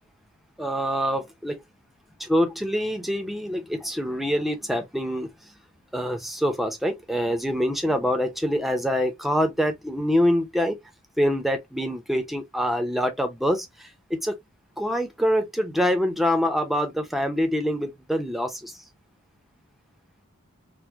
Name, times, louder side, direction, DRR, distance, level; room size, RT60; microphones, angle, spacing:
voice 1, 0.6-1.6 2.2-5.3 5.9-10.8 11.2-14.4 14.8-18.8, equal, ahead, 0.5 m, -25 dB
4.4 x 2.0 x 2.4 m
head